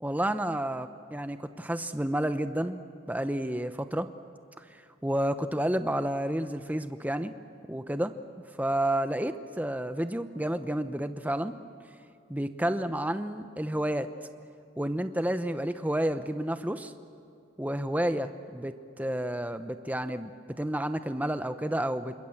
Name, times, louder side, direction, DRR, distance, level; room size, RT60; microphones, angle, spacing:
voice 1, 0.0-2.8 3.1-4.1 4.6-7.3 7.6-8.1 8.6-11.6 12.3-14.1 14.8-16.9 17.6-20.3 20.6-22.1, right 1 dB, 10° right, 9 dB, 0.9 m, -30 dB
28.0 x 27.0 x 7.3 m, 2.5 s
head